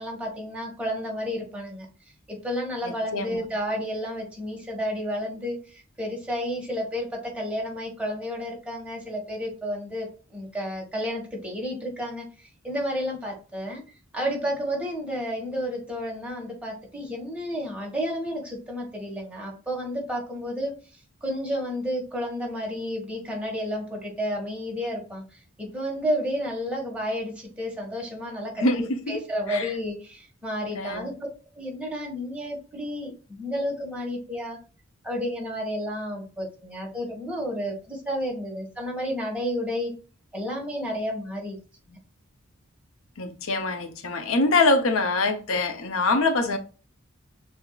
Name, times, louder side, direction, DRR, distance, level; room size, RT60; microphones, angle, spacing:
voice 1, 0.0-1.9 2.3-13.8 14.1-28.6 29.1-31.1 31.6-34.6 35.0-39.9 40.3-41.6 41.9-42.0, equal, 5° right, 1.5 m, -31 dB
voice 2, 2.8-3.5 28.6-29.2 29.5-29.7 30.7-31.1 43.2-46.6, left 3 dB, 75° left, 0.8 m, -24 dB
7.0 x 2.8 x 2.3 m
head